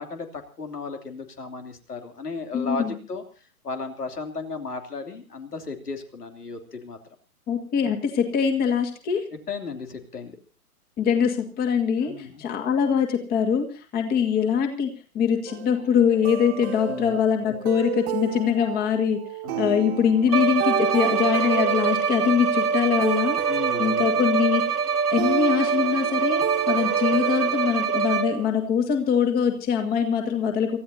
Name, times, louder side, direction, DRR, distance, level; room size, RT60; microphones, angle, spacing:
voice 1, 0.0-3.2 3.6-7.0 9.5-10.4 12.0-12.4 16.9-17.2 19.4-19.7 23.5-24.1, left 4 dB, 80° left, 5 dB, 3.2 m, -35 dB
voice 2, 2.5-2.9 7.5-9.2 11.0-19.2 19.6-23.4 23.8-24.8 25.1-30.8, left 7 dB, 20° left, 5 dB, 1.9 m, -23 dB
sound 1, 15.5-27.7, right 12 dB, 40° right, 1.8 m, -33 dB
Bowed string instrument, 20.3-28.6, right 6 dB, 80° right, 1.2 m, -24 dB
29.0 x 14.0 x 2.8 m, 0.36 s
figure-of-eight pair, 125°, 46 cm